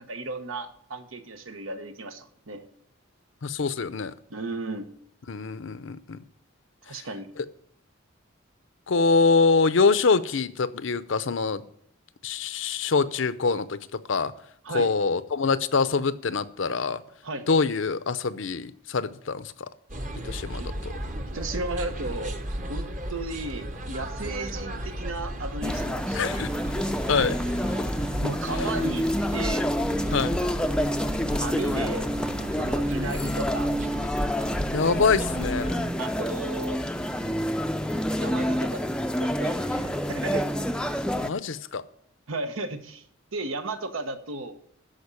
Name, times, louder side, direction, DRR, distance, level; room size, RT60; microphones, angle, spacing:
voice 1, 0.0-2.6 4.3-4.9 6.8-7.3 14.6-14.9 17.2-17.5 20.6-20.7 21.3-22.4 22.7-26.5 27.1-27.5 28.2-29.1 29.3-29.7 31.4-32.1 32.6-33.7 36.0-36.8 38.2-38.8 39.2-40.5 42.3-43.0 43.3-44.5, right 2 dB, 80° right, 1.2 m, -34 dB
voice 2, 3.4-4.1 5.3-6.2 8.9-11.6 12.2-13.8 14.1-14.3 14.7-17.0 17.5-19.7 20.2-20.9 26.1-26.5 27.1-27.3 30.1-30.4 34.7-35.9 41.2-41.8, left 4 dB, 65° left, 0.6 m, -24 dB
sound 1, 19.9-35.8, equal, 40° right, 1.2 m, -34 dB
sound 2, 25.6-41.3, equal, 5° left, 0.5 m, -28 dB
13.0 x 5.2 x 8.3 m
head